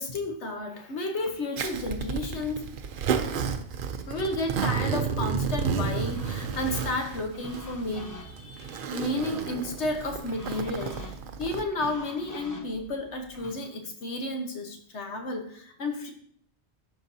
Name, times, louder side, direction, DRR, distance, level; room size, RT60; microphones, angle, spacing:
voice 1, 0.0-2.7 4.1-11.1 11.4-16.1, left 2 dB, 80° left, 4 dB, 1.4 m, -32 dB
Zipper (clothing), 1.6-11.6, right 6 dB, 60° right, 0.7 m, -32 dB
sound 1, 6.1-13.6, left 1 dB, 20° left, 1.0 m, -46 dB
12.5 x 4.6 x 2.7 m, 0.62 s
omnidirectional pair, 1.1 m